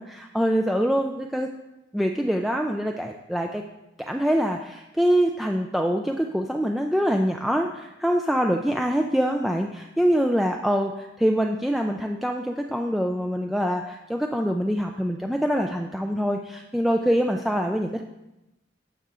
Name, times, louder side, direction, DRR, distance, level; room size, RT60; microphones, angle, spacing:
voice 1, 0.0-1.5 1.9-3.6 4.1-18.0, equal, ahead, 2 dB, 0.3 m, -24 dB
11.0 x 6.7 x 3.7 m, 0.96 s
head